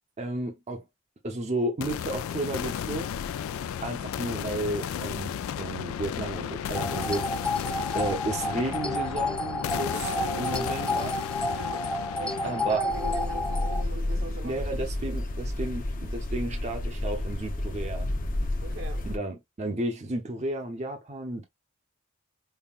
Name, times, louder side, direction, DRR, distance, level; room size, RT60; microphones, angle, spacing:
voice 1, 0.2-0.8 1.2-3.1 3.8-7.2 7.9-10.1 10.4-11.2 12.4-12.8 14.4-18.1 19.0-21.5, right 2 dB, 35° right, 0.7 m, -32 dB
sound 1, 1.8-15.7, left 8 dB, 90° left, 0.3 m, -34 dB
sound 2, 6.7-13.8, left 1 dB, 5° left, 0.3 m, -31 dB
voice 2, 9.9-10.7 11.5-11.8 12.2-14.7 15.0-15.2 18.6-19.0, right 3 dB, 70° right, 1.1 m, -39 dB
sound 3, 12.9-19.2, left 1 dB, 40° left, 0.7 m, -31 dB
5.4 x 2.2 x 2.3 m
head